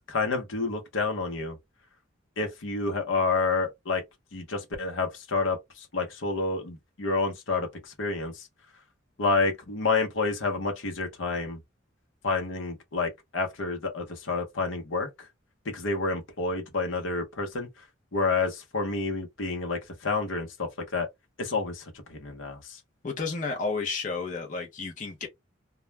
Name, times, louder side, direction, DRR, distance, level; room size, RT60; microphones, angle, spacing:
voice 1, 0.1-1.6 2.4-4.0 4.3-8.5 9.2-11.6 12.2-15.1 15.7-17.7 18.1-21.1 21.4-21.8 22.1-22.6, left 3 dB, 85° left, 0.8 m, -29 dB
voice 2, 23.0-25.3, left 4 dB, 40° left, 0.6 m, -31 dB
2.3 x 2.1 x 3.1 m
head